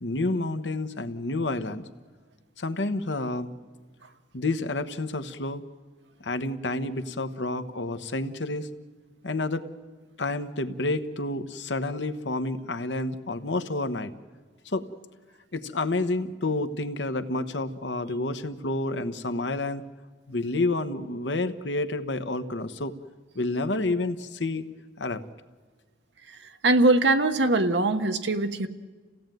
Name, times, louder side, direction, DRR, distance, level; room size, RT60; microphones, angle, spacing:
voice 1, 0.0-1.9 2.6-3.5 4.3-5.6 6.2-8.7 9.2-9.7 10.2-14.1 14.6-14.8 15.5-19.9 20.3-22.9 23.3-24.7 25.0-25.2, left 2 dB, 75° left, 9 dB, 1.2 m, -29 dB
voice 2, 26.6-28.7, right 2 dB, 75° right, 8 dB, 1.3 m, -21 dB
28.0 x 16.5 x 9.2 m, 1.4 s
head